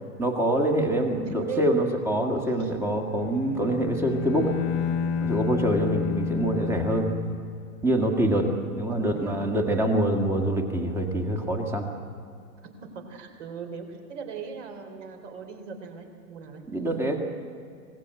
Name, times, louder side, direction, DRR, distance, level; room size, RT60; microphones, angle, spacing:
voice 1, 0.2-4.5 5.2-7.1 7.8-8.5 8.8-11.9 16.7-17.2, right 1 dB, 5° right, 3 dB, 1.9 m, -25 dB
voice 2, 1.1-1.7 2.6-2.7 3.3-3.8 5.8-5.9 8.5-9.5 12.9-16.6, right 6 dB, 50° right, 5 dB, 4.3 m, -40 dB
Bowed string instrument, 3.2-8.0, left 7 dB, 25° left, 0.8 m, -30 dB
24.5 x 18.5 x 7.9 m, 2.3 s
hypercardioid pair, 140°, 46 cm